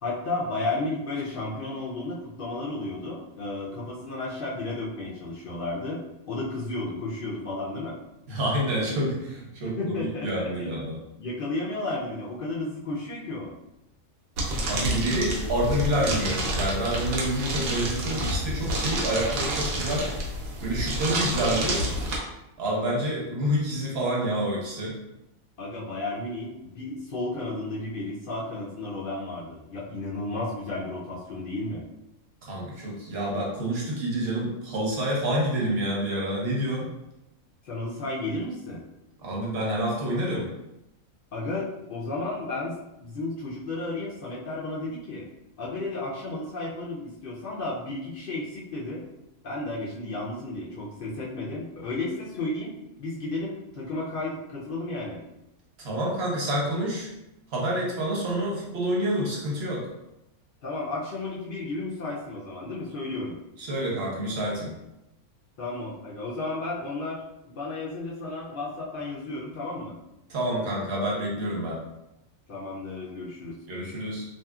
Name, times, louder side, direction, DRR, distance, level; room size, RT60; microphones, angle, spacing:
voice 1, 0.0-8.0 9.6-10.7 11.2-13.5 25.6-31.8 37.6-38.8 41.3-45.3 45.6-49.0 49.4-55.2 60.6-63.4 65.6-70.0 72.5-73.6, left 2 dB, 65° left, -5 dB, 0.5 m, -33 dB
voice 2, 8.3-11.0 14.6-20.1 20.6-21.8 22.6-24.9 32.4-36.9 39.2-40.5 55.8-57.1 57.5-59.9 63.6-64.7 70.3-71.8 73.7-74.2, right 1 dB, 55° right, -4 dB, 0.9 m, -28 dB
sound 1, 14.4-22.2, right 1 dB, 85° right, 1.1 m, -29 dB
2.7 x 2.7 x 2.3 m, 0.90 s
omnidirectional pair, 1.4 m